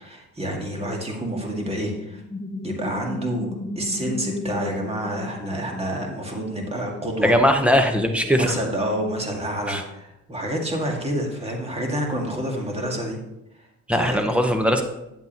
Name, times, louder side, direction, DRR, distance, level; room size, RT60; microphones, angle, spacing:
voice 1, 0.0-2.2 2.6-3.5 3.8-7.3 8.3-13.2 13.9-14.2, equal, 20° right, 1 dB, 2.0 m, -28 dB
sound 1, 2.1-6.5, left 2 dB, 15° left, 1.1 m, -34 dB
voice 2, 7.2-8.6 9.7-9.8 13.9-14.8, equal, 5° right, 5 dB, 1.0 m, -20 dB
9.4 x 8.0 x 3.0 m, 0.89 s
cardioid pair, 90°, 30 cm